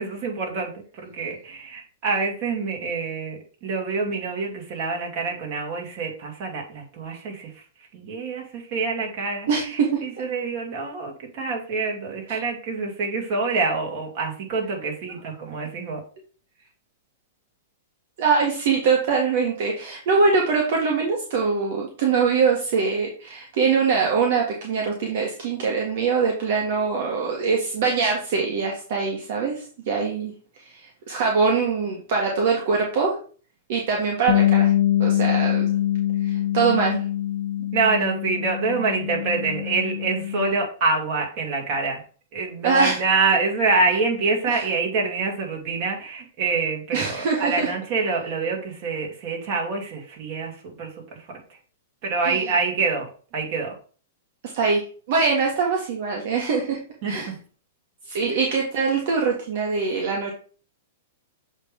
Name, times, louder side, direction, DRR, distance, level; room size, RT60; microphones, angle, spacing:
voice 1, 0.0-7.6 7.9-16.0 37.7-42.0 42.3-51.6 52.0-53.7 57.0-57.4 58.2-58.4, right 4 dB, 40° right, 0 dB, 2.4 m, -26 dB
voice 2, 9.5-10.0 12.3-12.4 18.2-30.3 30.6-33.2 33.7-34.7 35.0-35.7 36.2-37.0 42.6-43.0 44.5-44.6 46.9-47.7 52.2-52.4 54.5-56.8 57.1-57.3 58.1-60.3, right 5 dB, 60° right, 0 dB, 1.7 m, -23 dB
Bass guitar, 34.3-40.5, left 12 dB, 60° left, 0.4 m, -24 dB
7.2 x 3.4 x 5.3 m, 0.41 s
hypercardioid pair, 145°, 0 cm